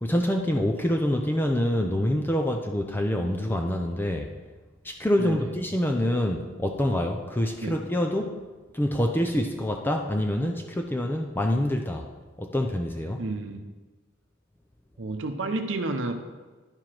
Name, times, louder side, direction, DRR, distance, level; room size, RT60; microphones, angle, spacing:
voice 1, 0.0-4.3 4.8-8.4 8.7-12.1 12.4-13.2, left 1 dB, 10° left, 3 dB, 0.5 m, -26 dB
voice 2, 5.2-5.5 7.6-7.8 13.2-13.7 15.0-16.1, right 2 dB, 75° right, 6 dB, 0.8 m, -30 dB
10.5 x 4.9 x 5.8 m, 1.3 s
head